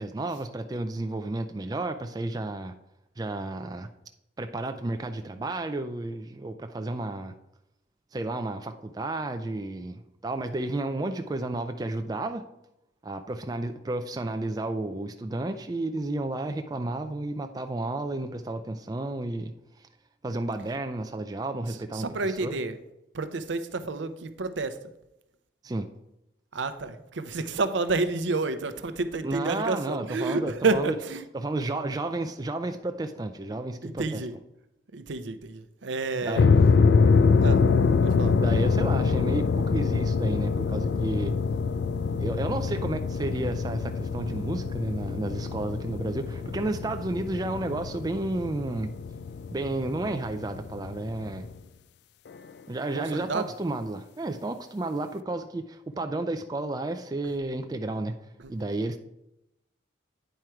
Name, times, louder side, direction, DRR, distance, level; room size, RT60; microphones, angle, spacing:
voice 1, 0.0-2.7 3.2-3.9 4.4-7.3 8.1-12.5 13.0-19.5 19.8-19.9 20.2-22.6 25.6-25.9 29.2-30.9 31.3-34.2 36.2-36.5 38.4-41.4 42.2-48.9 49.5-51.5 52.7-58.2 58.5-59.0, right 2 dB, 20° right, 7 dB, 0.3 m, -32 dB
voice 2, 21.9-22.8 23.1-24.8 26.5-31.2 33.8-34.3 34.9-36.5 37.4-37.6 38.0-38.3 53.0-53.5 58.4-58.5, right 3 dB, 75° right, 11 dB, 0.6 m, -29 dB
sound 1, 36.4-51.6, left 4 dB, 60° left, 0.3 m, -25 dB
9.1 x 4.4 x 4.7 m, 0.86 s
head